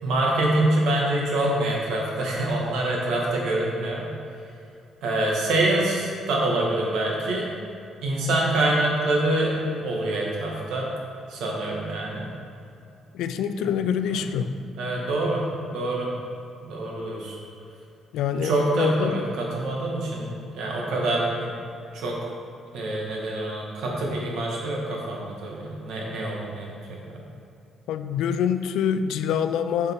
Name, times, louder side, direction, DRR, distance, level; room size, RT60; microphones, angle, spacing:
voice 1, 0.0-4.1 5.0-7.5 8.0-10.9 11.3-12.2 13.6-13.7 14.0-14.2 14.8-15.4 15.7-16.1 16.6-17.4 18.4-20.3 20.5-21.5 21.9-22.2 22.7-27.0, right 1 dB, 70° right, -2 dB, 1.5 m, -25 dB
voice 2, 13.1-14.5 18.1-19.3 27.9-29.9, left 8 dB, 75° left, 10 dB, 0.3 m, -25 dB
8.3 x 5.4 x 3.5 m, 2.6 s
cardioid pair, 180°, 0 cm